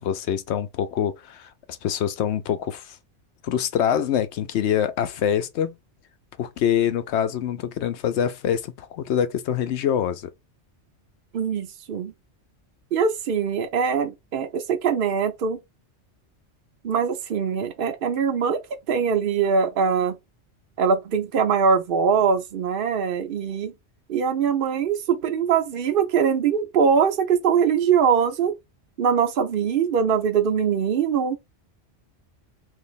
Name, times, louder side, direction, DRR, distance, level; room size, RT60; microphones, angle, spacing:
voice 1, 0.0-3.0 3.4-5.7 6.4-10.3, left 9 dB, 75° left, 0.8 m, -25 dB
voice 2, 11.3-12.1 12.9-15.6 16.8-18.6 18.9-20.2 20.8-23.7 24.1-28.5 29.0-31.4, right 6 dB, 55° right, 0.8 m, -22 dB
2.9 x 2.7 x 4.0 m
omnidirectional pair, 1.2 m